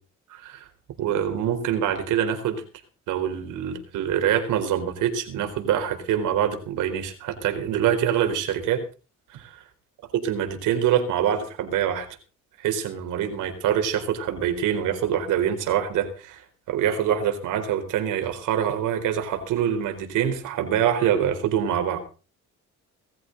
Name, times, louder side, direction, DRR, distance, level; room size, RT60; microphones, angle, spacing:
voice 1, 0.3-0.7 1.0-2.6 3.1-8.8 9.3-9.6 10.2-12.1 12.6-16.4 16.7-22.0, right 9 dB, 90° right, 7 dB, 4.3 m, -25 dB
20.0 x 14.5 x 4.0 m, 0.35 s
cardioid pair, 90°, 30 cm